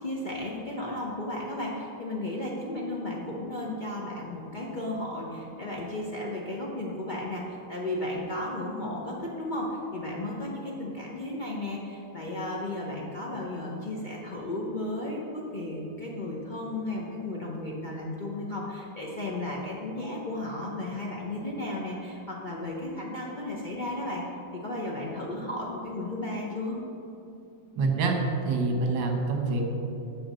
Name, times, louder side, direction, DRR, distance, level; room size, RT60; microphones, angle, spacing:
voice 1, 0.0-24.2 24.5-26.8, left 1 dB, 60° left, -4 dB, 0.5 m, -34 dB
voice 2, 27.8-28.2 28.5-29.7, right 3 dB, 80° right, 2 dB, 1.8 m, -26 dB
9.3 x 3.6 x 6.9 m, 2.7 s
omnidirectional pair, 2.0 m